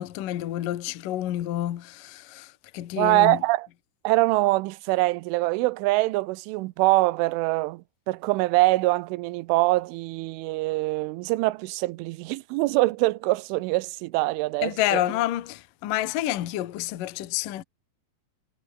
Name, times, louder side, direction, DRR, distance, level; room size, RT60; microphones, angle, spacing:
voice 1, 0.0-3.4 14.6-17.6, left 14 dB, 60° left, 2.5 m, -29 dB
voice 2, 3.0-3.7 4.0-15.0, right 21 dB, 90° right, 3.2 m, -24 dB
omnidirectional pair, 5.5 m